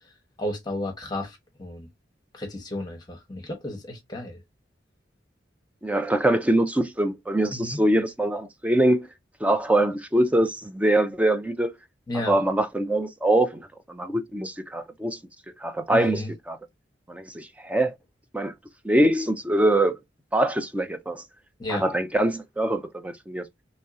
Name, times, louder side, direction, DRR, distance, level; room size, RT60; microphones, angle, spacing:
voice 1, 0.4-1.9 2.3-4.4 7.5-7.8 12.1-12.4 15.9-16.3 21.6-21.8, left 1 dB, 25° left, 1.0 m, -33 dB
voice 2, 5.8-9.1 9.4-11.7 12.1-15.2 15.6-16.6 17.1-17.9 18.3-18.5 18.8-20.0 20.3-21.2 21.7-23.4, right 1 dB, 10° right, 0.4 m, -23 dB
3.2 x 2.7 x 3.5 m
head